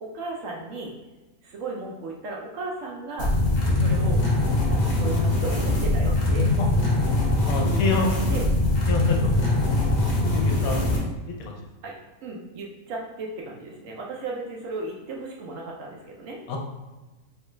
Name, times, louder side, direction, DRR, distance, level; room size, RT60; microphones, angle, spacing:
voice 1, 0.0-0.9 1.4-3.3 3.8-4.2 4.7-6.5 7.7-8.5 9.2-9.3 11.8-11.9 12.2-16.4, right 2 dB, 65° right, -1 dB, 0.9 m, -35 dB
sound 1, 3.2-11.0, left 2 dB, 50° left, 0.5 m, -22 dB
voice 2, 7.5-8.1 8.9-9.3 9.7-9.9 10.3-10.8 11.4-11.6 16.5-16.6, left 3 dB, 75° left, 0 dB, 1.0 m, -27 dB
3.2 x 2.3 x 3.0 m, 1.2 s
omnidirectional pair, 1.6 m